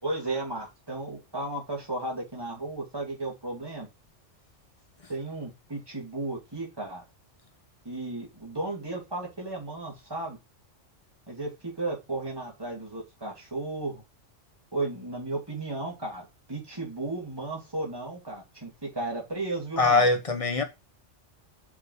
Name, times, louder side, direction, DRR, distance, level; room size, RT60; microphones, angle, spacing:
voice 1, 0.0-3.9 5.1-7.0 7.8-10.4 11.3-14.0 14.7-20.1, right 2 dB, 20° right, 2.7 m, -34 dB
voice 2, 19.8-20.6, left 3 dB, 30° left, 1.1 m, -22 dB
5.5 x 5.2 x 4.6 m
omnidirectional pair, 1.3 m